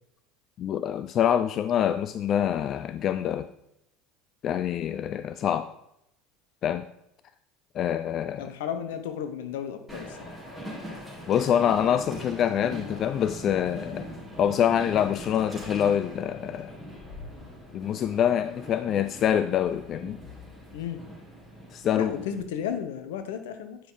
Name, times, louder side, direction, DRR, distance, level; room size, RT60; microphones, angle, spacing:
voice 1, 0.6-3.5 4.4-5.7 6.6-6.8 7.8-8.5 11.3-14.1 14.4-16.7 17.7-20.2 21.7-22.1, left 9 dB, 45° left, 12 dB, 0.4 m, -25 dB
voice 2, 8.4-10.3 20.7-21.0 21.9-23.8, left 8 dB, 75° left, 8 dB, 0.9 m, -33 dB
Train, 9.9-22.4, equal, 5° left, 3.2 m, -41 dB
9.5 x 5.9 x 3.9 m, 0.80 s
hypercardioid pair, 80°, 0 cm